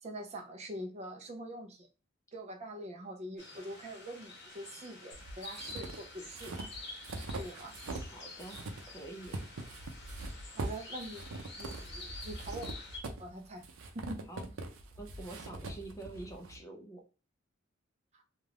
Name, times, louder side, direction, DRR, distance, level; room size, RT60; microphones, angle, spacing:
voice 1, 0.0-1.9 2.3-6.5 7.3-7.7 10.6-11.2 11.6-12.9 13.2-13.6 13.9-14.2 18.1-18.2, right 1 dB, 35° right, 0.4 m, -44 dB
sound 1, 3.4-13.0, left 3 dB, 55° left, 0.8 m, -49 dB
sound 2, 5.1-8.1 8.4-16.6, right 2 dB, 90° right, 0.5 m, -43 dB
voice 2, 7.9-8.6 8.9-9.4 14.3-14.5 15.0-17.0, right 2 dB, 15° left, 0.5 m, -46 dB
2.4 x 2.3 x 3.2 m
head